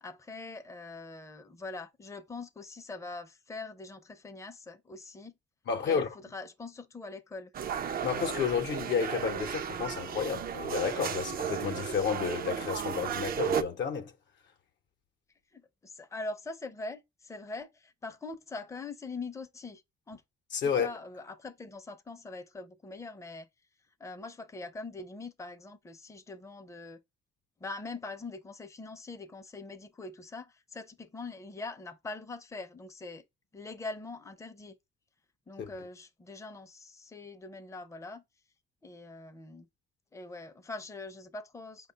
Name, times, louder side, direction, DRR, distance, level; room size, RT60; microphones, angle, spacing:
voice 1, 0.0-5.3 5.8-7.5 15.5-19.8 20.1-20.2 20.8-23.5 24.0-27.0 27.6-33.3 33.5-34.8 35.5-38.2 38.8-39.7 40.1-41.9, left 3 dB, 15° left, 0.5 m, -43 dB
voice 2, 5.7-6.1 8.0-14.1 20.5-20.9 35.6-35.7, left 7 dB, 65° left, 0.7 m, -31 dB
sound 1, 7.5-13.6, right 8 dB, 50° right, 0.4 m, -34 dB
5.1 x 2.3 x 3.8 m
cardioid pair, 90°, 20 cm